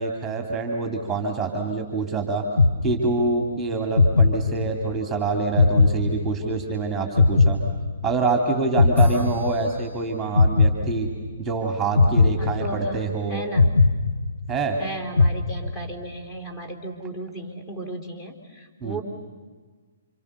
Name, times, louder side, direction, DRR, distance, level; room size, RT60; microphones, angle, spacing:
voice 1, 0.0-2.4 2.8-7.6 8.0-11.1 11.4-13.4 14.5-14.8 18.8-19.0, right 3 dB, 10° right, 3 dB, 3.1 m, -26 dB
sound 1, 2.6-3.4 4.0-5.0 5.6-6.7 7.2-8.3 8.8-9.9 10.4-11.4 12.0-13.1 13.6-14.7 15.2-16.0, left 3 dB, 75° left, 1.2 m, -20 dB
voice 2, 12.4-13.7 14.8-19.0, right 1 dB, 15° left, 3 dB, 3.9 m, -35 dB
30.0 x 27.0 x 6.9 m, 1.4 s
figure-of-eight pair, 125°, 0 cm